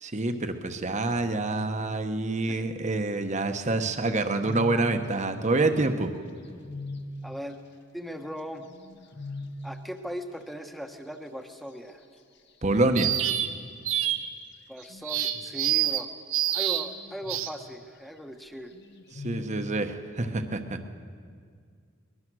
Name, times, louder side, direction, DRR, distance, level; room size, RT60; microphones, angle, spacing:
voice 1, 0.0-6.1 12.6-13.2 19.2-20.8, right 2 dB, 35° right, 7 dB, 1.1 m, -27 dB
sound 1, 4.4-4.9 5.6-5.7 6.2-7.2 8.6-9.7 13.2-13.7 14.8-15.6 16.8-17.7 18.7-19.7, left 3 dB, 55° left, 1.5 m, -41 dB
voice 2, 7.2-7.6 7.9-8.7 9.6-12.0 14.7-16.1 16.5-18.7, equal, ahead, 5 dB, 1.2 m, -38 dB
sound 2, 13.0-13.5 13.9-14.2 15.0-16.0 16.3-16.9 17.3-17.5, right 12 dB, 85° right, 1.2 m, -26 dB
22.5 x 21.0 x 6.3 m, 2.1 s
head